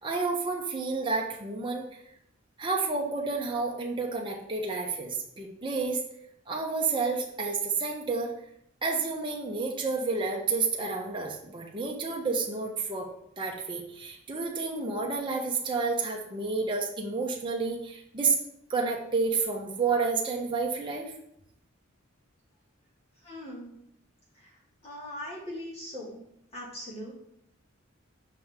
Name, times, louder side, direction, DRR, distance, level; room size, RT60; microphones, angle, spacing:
voice 1, 0.0-2.0 2.6-6.0 6.5-8.3 8.8-13.1 13.4-18.4 18.7-21.1, right 4 dB, 25° right, -1 dB, 0.9 m, -30 dB
voice 2, 23.2-23.7 24.4-24.5 24.8-26.2 26.5-27.1, left 1 dB, 30° left, -6 dB, 2.2 m, -40 dB
6.4 x 5.4 x 3.6 m, 0.74 s
head